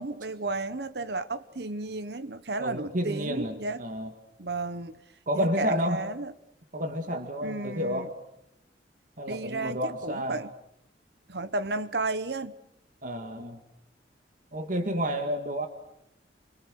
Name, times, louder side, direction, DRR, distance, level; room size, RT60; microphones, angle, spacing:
voice 1, 0.0-3.8 4.4-5.0 5.3-6.3 7.4-8.1 9.3-10.5 11.3-12.6, right 2 dB, 60° right, 1.1 m, -33 dB
voice 2, 2.6-4.1 5.3-6.1 6.7-8.1 9.2-10.4 13.0-13.6 14.5-15.7, equal, 45° right, 2.0 m, -30 dB
30.0 x 24.0 x 6.4 m
head